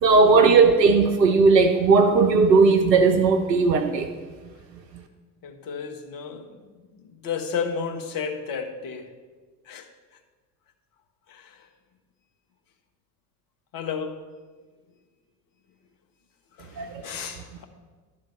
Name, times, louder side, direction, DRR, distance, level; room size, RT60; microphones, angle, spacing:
voice 1, 0.0-4.1 16.8-16.9, right 4 dB, 85° right, 0.7 m, -17 dB
voice 2, 5.4-6.5 7.2-9.1 9.7-9.9 11.3-11.6 13.7-14.2 16.6-17.6, left 6 dB, 45° left, 1.3 m, -32 dB
11.5 x 3.9 x 7.7 m
figure-of-eight pair, 70°, 49 cm